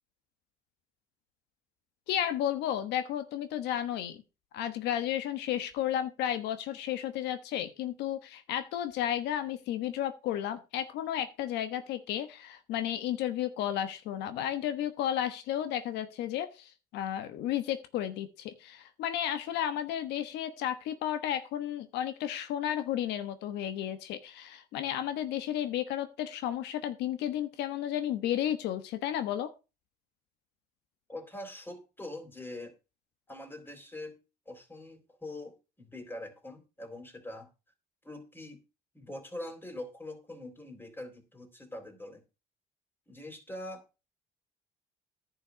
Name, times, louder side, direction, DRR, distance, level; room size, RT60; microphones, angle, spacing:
voice 1, 2.1-4.2 4.5-29.5, left 11 dB, 85° left, 10 dB, 1.2 m, -33 dB
voice 2, 31.1-32.8 33.3-34.2 34.5-37.5 38.0-38.6 38.9-42.2 43.1-43.9, left 1 dB, 10° left, 6 dB, 3.7 m, -43 dB
10.5 x 6.3 x 6.3 m, 0.30 s
cardioid pair, 110°, 17 cm